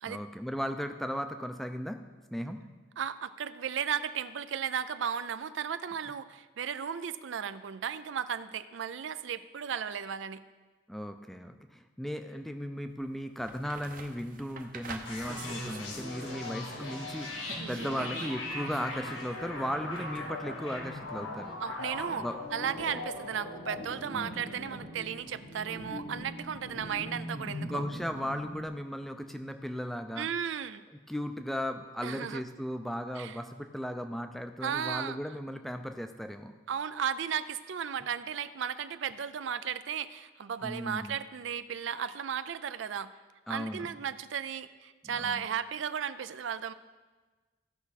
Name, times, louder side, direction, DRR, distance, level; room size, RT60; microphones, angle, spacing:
voice 1, 0.0-2.0 2.3-2.6 10.9-21.5 22.1-22.4 24.1-24.3 27.3-30.3 31.1-36.5 40.6-41.1 43.5-43.9 45.0-45.5, equal, ahead, 6 dB, 0.4 m, -36 dB
voice 2, 3.0-10.4 17.6-18.1 21.6-22.2 22.5-27.8 30.2-30.8 32.0-32.4 33.2-33.4 34.6-35.2 36.7-43.1 43.5-46.7, right 8 dB, 70° right, 13 dB, 0.4 m, -35 dB
sound 1, 12.9-13.0 13.4-16.9 17.2-20.4 22.9-23.0, right 3 dB, 40° right, 0.7 m, -46 dB
sound 2, 15.1-28.7, left 2 dB, 80° left, 2.0 m, -40 dB
15.5 x 5.9 x 4.1 m, 1.3 s
head